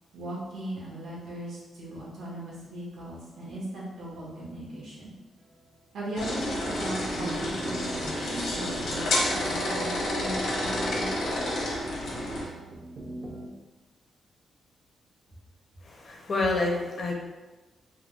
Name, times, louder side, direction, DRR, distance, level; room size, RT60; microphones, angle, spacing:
voice 1, 0.1-5.1 5.9-11.1, right 1 dB, 80° right, -5 dB, 1.1 m, -38 dB
sound 1, 5.5-5.7 6.1-13.5, right 1 dB, 35° right, 0.4 m, -41 dB
sound 2, 6.1-12.5, left 1 dB, 80° left, 0.9 m, -30 dB
voice 2, 15.9-17.1, left 2 dB, 35° left, 0 dB, 0.5 m, -28 dB
3.3 x 2.2 x 3.0 m, 1.2 s
wide cardioid pair, 165°, 0 cm